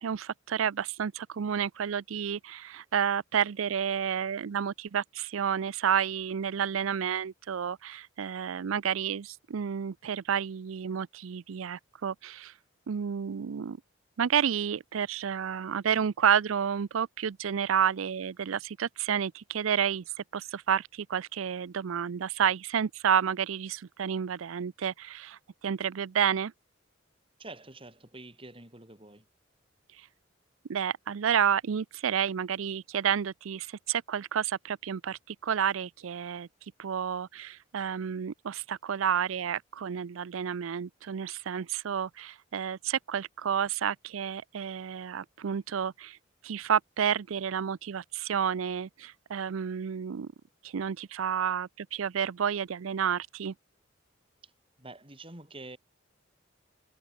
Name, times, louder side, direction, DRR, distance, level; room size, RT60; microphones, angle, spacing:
voice 1, 0.0-12.5 12.9-13.8 14.2-20.0 20.3-26.5 29.9-30.1 30.7-36.5 36.8-46.2 46.4-50.3 50.6-53.5, right 8 dB, 90° right, 0.5 m, -30 dB
voice 2, 27.4-29.3 54.4-54.5 54.8-55.8, right 2 dB, 25° right, 4.2 m, -47 dB
head